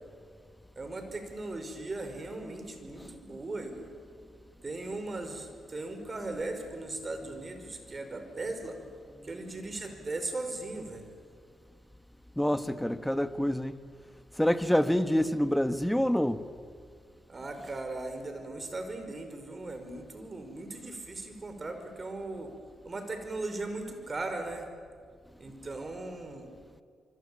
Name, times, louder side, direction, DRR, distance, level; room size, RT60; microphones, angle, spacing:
voice 1, 0.8-3.9 4.6-8.8 9.2-11.1 17.3-22.5 22.8-24.7 25.4-26.5, right 2 dB, 40° right, 5.4 m, -38 dB
voice 2, 12.4-13.8 14.4-16.4, equal, 5° left, 1.5 m, -26 dB
25.5 x 24.5 x 8.9 m
supercardioid pair, 50°, 0 cm